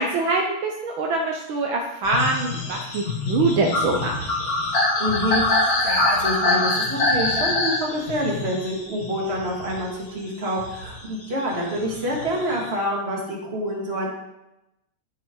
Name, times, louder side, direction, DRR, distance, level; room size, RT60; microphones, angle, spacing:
voice 1, 0.0-4.1, right 3 dB, 70° right, 1 dB, 1.6 m, -24 dB
sound 1, 2.0-10.0 10.5-12.7, left 2 dB, 45° left, 2.0 m, -24 dB
voice 2, 5.0-14.1, equal, 30° right, -2 dB, 2.3 m, -27 dB
12.5 x 5.7 x 4.6 m, 0.91 s
omnidirectional pair, 2.4 m